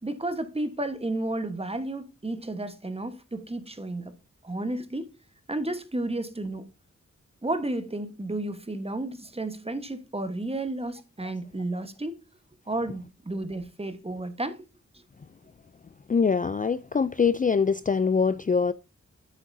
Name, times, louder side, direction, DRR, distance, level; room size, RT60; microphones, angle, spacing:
voice 1, 0.0-4.1 4.4-5.1 5.5-6.7 7.4-12.2 12.7-14.7 14.9-15.0, right 2 dB, 20° right, 1.2 m, -32 dB
voice 2, 16.1-18.7, left 5 dB, 30° left, 0.4 m, -23 dB
9.6 x 8.5 x 2.7 m
wide cardioid pair, 95°, 29 cm